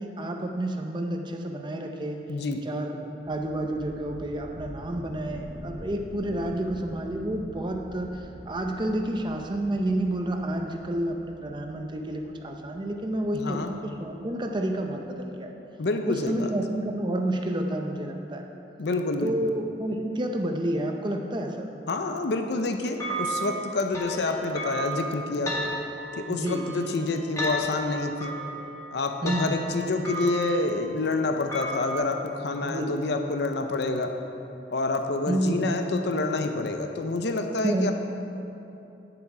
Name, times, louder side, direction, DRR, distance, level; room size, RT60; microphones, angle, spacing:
voice 1, 0.0-2.2 2.6-15.5 16.0-18.5 19.2-21.7 26.3-26.7 29.2-29.6 32.6-32.9 35.3-35.7 37.6-37.9, right 1 dB, 25° right, 3 dB, 0.5 m, -30 dB
voice 2, 2.3-2.6 13.3-13.7 15.8-16.5 18.8-19.5 21.9-25.5 26.2-28.3 28.9-34.1 34.7-37.9, left 3 dB, 70° left, 6 dB, 0.6 m, -28 dB
sound 1, 3.2-14.7, right 1 dB, 70° right, 1.1 m, -46 dB
sound 2, 23.0-32.0, right 1 dB, 20° left, 1.7 m, -34 dB
10.0 x 7.0 x 4.8 m, 2.8 s
head